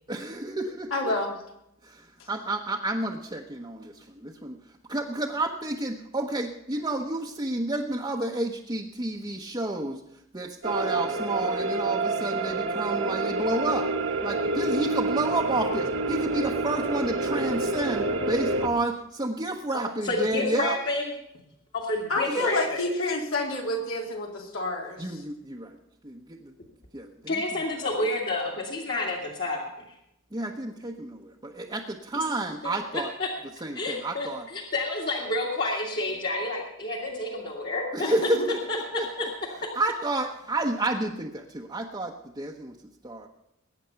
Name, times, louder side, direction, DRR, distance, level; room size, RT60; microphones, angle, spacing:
voice 1, 0.1-1.1 1.8-4.6 4.9-10.0 10.3-13.9 14.2-20.8 22.3-22.6 25.0-25.8 26.0-26.5 26.9-27.4 30.3-33.1 33.6-34.5 37.9-39.3 39.7-42.7 43.0-43.3, right 2 dB, 20° right, -1 dB, 0.9 m, -30 dB
voice 2, 0.9-1.4 22.1-25.2 38.0-38.5, left 2 dB, 80° left, -1 dB, 3.7 m, -29 dB
sound 1, 10.6-18.7, right 3 dB, 65° right, 1.7 m, -28 dB
voice 3, 19.7-21.1 21.7-22.9 27.3-29.9 32.2-32.3 32.6-33.3 33.7-38.1 38.7-39.3, left 2 dB, 50° left, -3 dB, 2.2 m, -30 dB
21.0 x 9.3 x 5.8 m, 0.83 s
head